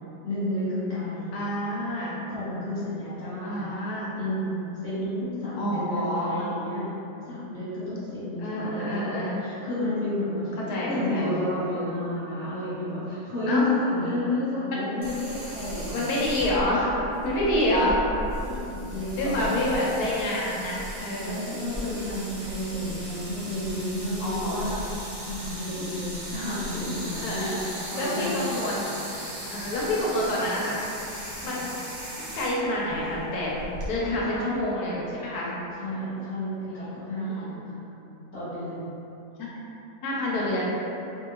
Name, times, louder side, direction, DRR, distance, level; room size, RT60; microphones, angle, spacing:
voice 1, 0.2-1.4 2.3-3.7 4.2-6.8 7.2-16.3 17.7-17.8 18.4-19.6 21.2-24.8 25.2-27.5 27.9-28.3 30.1-30.3 31.4-31.6 34.1-34.6 35.8-37.8 38.3-38.9 40.3-40.6, left 1 dB, 30° left, -13 dB, 1.3 m, -31 dB
voice 2, 1.3-2.2 3.4-4.1 5.6-6.5 8.4-9.4 10.7-11.3 13.5-13.7 14.7-14.9 15.9-17.0 17.2-18.0 19.2-21.4 24.2-24.7 27.1-27.5 28.0-28.9 29.4-30.8 31.4-31.8 32.3-35.5 36.7-36.9 37.3-37.4 40.0-40.6, left 1 dB, 75° left, -5 dB, 1.2 m, -28 dB
sound 1, 15.0-33.9, equal, 55° right, 1.0 m, -37 dB
3.0 x 2.6 x 3.0 m, 2.9 s
omnidirectional pair, 1.7 m